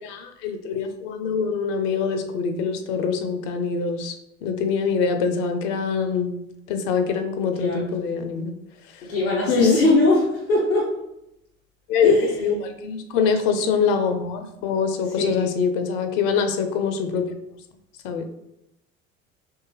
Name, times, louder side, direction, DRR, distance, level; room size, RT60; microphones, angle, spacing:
voice 1, 0.0-4.1 4.4-6.3 6.7-8.5 8.9-9.0 9.5-9.8 11.9-17.3 18.0-18.2, left 5 dB, 55° left, 7 dB, 0.6 m, -24 dB
voice 2, 9.0-11.0 12.0-12.3 15.1-15.4, left 2 dB, 85° left, -6 dB, 0.8 m, -21 dB
3.6 x 3.1 x 2.8 m, 0.84 s
figure-of-eight pair, 65°, 41 cm